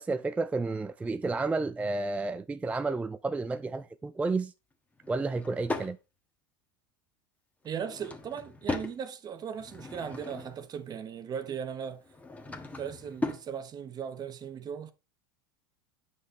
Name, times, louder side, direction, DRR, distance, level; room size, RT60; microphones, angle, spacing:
voice 1, 0.0-4.5 5.1-6.0, right 3 dB, 10° right, 0.4 m, -31 dB
Drawer open or close / Wood, 5.0-5.9 7.6-9.0 9.5-10.7 12.0-13.5, left 2 dB, 10° left, 1.4 m, -38 dB
voice 2, 7.6-12.0 12.5-14.9, right 7 dB, 30° right, 1.0 m, -38 dB
9.2 x 5.7 x 3.3 m
hypercardioid pair, 105°, 13 cm